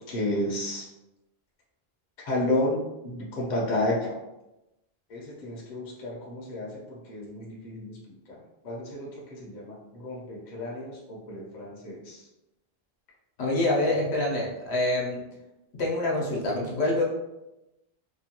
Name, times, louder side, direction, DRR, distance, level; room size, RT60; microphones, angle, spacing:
voice 1, 0.1-0.9 2.2-4.2 5.1-12.2, left 1 dB, 50° left, -4 dB, 0.8 m, -32 dB
voice 2, 13.4-15.2 15.8-17.0, left 1 dB, 80° left, -2 dB, 1.0 m, -26 dB
2.8 x 2.2 x 2.8 m, 0.94 s
omnidirectional pair, 1.1 m